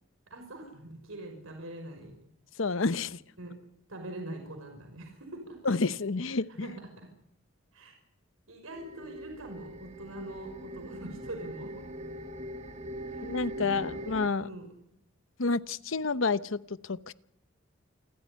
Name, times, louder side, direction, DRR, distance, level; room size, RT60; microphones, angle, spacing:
voice 1, 0.3-2.1 3.4-3.6 3.9-5.6 6.5-7.1 7.7-8.0 8.5-11.9 13.1-14.0 14.4-14.7, right 1 dB, 90° right, 5 dB, 5.8 m, -43 dB
voice 2, 2.6-3.2 5.6-6.7 13.2-14.5 15.4-17.1, left 3 dB, 75° left, 15 dB, 0.9 m, -29 dB
sound 1, 8.7-14.3, right 1 dB, 30° right, 1.8 m, -41 dB
28.0 x 14.0 x 10.0 m, 0.75 s
head